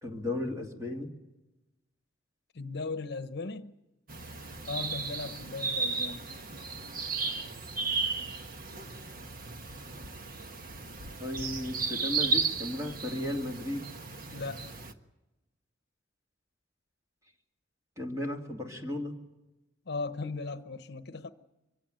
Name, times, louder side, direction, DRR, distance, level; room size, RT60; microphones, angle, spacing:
voice 1, 0.0-1.1 11.2-13.9 18.0-19.2, left 1 dB, 15° right, 2.8 m, -35 dB
voice 2, 2.5-3.7 4.7-6.3 14.3-14.6 19.9-21.3, left 3 dB, 60° left, 0.9 m, -37 dB
sound 1, 4.1-14.9, right 4 dB, 50° right, 1.3 m, -35 dB
24.0 x 16.5 x 9.1 m
head